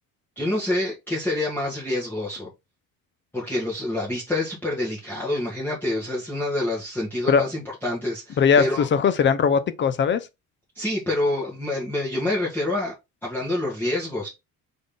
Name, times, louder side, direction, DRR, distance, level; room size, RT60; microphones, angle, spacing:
voice 1, 0.4-2.5 3.3-8.9 10.7-12.9 13.2-14.3, left 1 dB, 5° left, 1.3 m, -27 dB
voice 2, 8.4-10.3, left 6 dB, 35° left, 0.5 m, -19 dB
3.8 x 3.5 x 3.6 m
cardioid pair, 145°, 34 cm